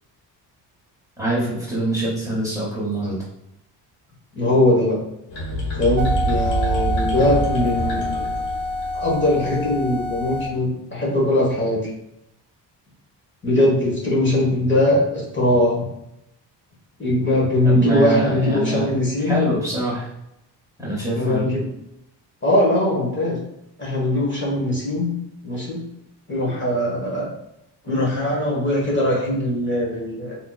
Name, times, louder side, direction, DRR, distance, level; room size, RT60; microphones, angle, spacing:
voice 1, 1.2-3.1 17.6-20.1 20.8-21.5, right 1 dB, 10° right, -6 dB, 1.0 m, -24 dB
voice 2, 4.3-5.0 5.8-8.0 8.9-11.8 13.4-15.8 17.0-19.4 21.1-21.7 22.4-23.4 23.8-25.1 25.4-25.8 26.3-27.3 27.8-30.4, left 1 dB, 25° left, -5 dB, 1.2 m, -20 dB
sound 1, 5.3-9.2, right 2 dB, 85° left, 1.4 m, -27 dB
sound 2, 6.0-10.5, left 1 dB, 55° right, 0.6 m, -26 dB
3.6 x 2.8 x 2.3 m, 0.81 s
cardioid pair, 110°, 43 cm